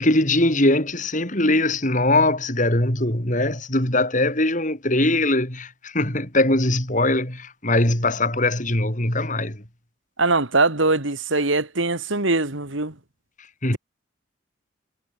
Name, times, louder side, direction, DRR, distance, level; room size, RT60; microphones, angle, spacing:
voice 1, 0.0-9.6 13.6-13.8, left 2 dB, 40° left, 4.9 m, -21 dB
voice 2, 10.2-12.9, right 3 dB, 75° right, 3.0 m, -22 dB
head